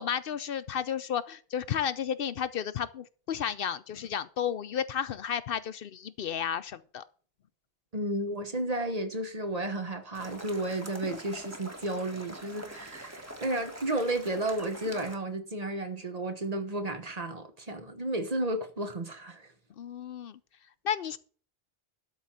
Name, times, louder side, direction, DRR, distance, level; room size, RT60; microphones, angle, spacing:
voice 1, 0.0-7.0 19.8-20.4 20.8-21.2, left 8 dB, 65° left, 0.8 m, -32 dB
voice 2, 7.9-19.5, right 1 dB, 40° right, 1.2 m, -33 dB
sound 1, 10.1-15.2, equal, 15° right, 1.4 m, -44 dB
12.0 x 4.2 x 7.5 m
omnidirectional pair, 1.0 m